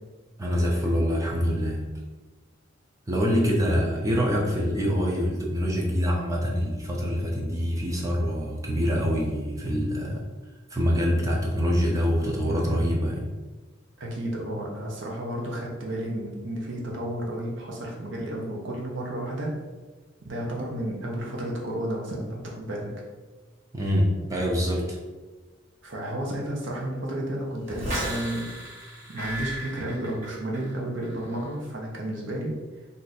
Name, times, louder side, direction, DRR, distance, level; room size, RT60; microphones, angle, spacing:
voice 1, 0.4-1.9 3.1-10.2 10.7-13.3 23.7-25.0, equal, 15° right, -2 dB, 0.4 m, -25 dB
voice 2, 14.0-19.5 20.2-22.9 25.8-28.5 29.1-32.6, right 1 dB, 70° right, -2 dB, 0.7 m, -32 dB
sound 1, 27.7-30.7 31.0-31.5, right 1 dB, 35° right, 1.2 m, -34 dB
2.5 x 2.4 x 4.0 m, 1.3 s
head